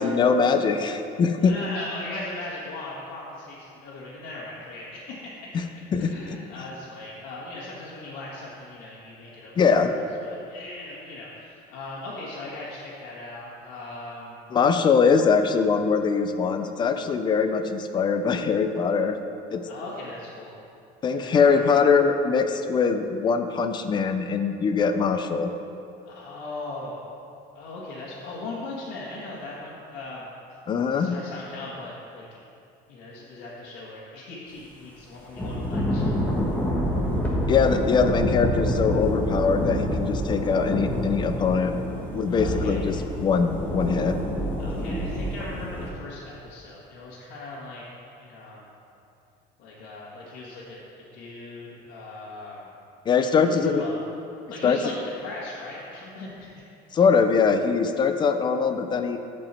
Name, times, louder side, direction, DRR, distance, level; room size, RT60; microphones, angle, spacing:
voice 1, 0.0-1.5 5.9-6.1 9.6-9.9 14.5-19.2 19.5-19.6 21.0-25.5 30.7-31.2 37.5-41.7 42.1-43.0 43.2-44.1 53.1-53.8 54.6-54.8 56.9-59.2, left 5 dB, 25° left, 8 dB, 0.5 m, -22 dB
voice 2, 1.4-5.3 6.0-9.8 10.2-14.4 19.7-20.6 21.1-21.7 26.0-27.0 27.5-30.3 31.0-32.4 32.9-36.3 42.3-42.8 44.6-47.8 48.2-48.7 49.6-52.7 53.2-54.0 54.5-56.5, left 2 dB, 80° left, -8 dB, 2.0 m, -39 dB
Thunder / Rain, 35.4-45.9, equal, 10° left, 1.2 m, -27 dB
14.5 x 5.4 x 4.4 m, 2.6 s
cardioid pair, 165°, 18 cm